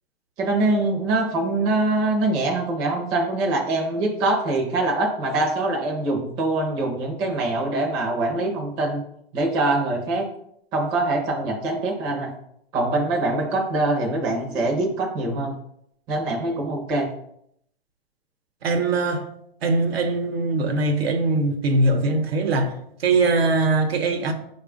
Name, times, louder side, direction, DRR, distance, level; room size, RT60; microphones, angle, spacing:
voice 1, 0.4-9.0 9.3-10.3 10.7-12.3 12.7-15.5 16.1-17.1, right 2 dB, 15° right, 0.5 m, -23 dB
voice 2, 18.6-19.3 19.6-24.3, right 3 dB, 80° right, 0.9 m, -21 dB
4.6 x 2.3 x 4.9 m
hypercardioid pair, 150°, 30 cm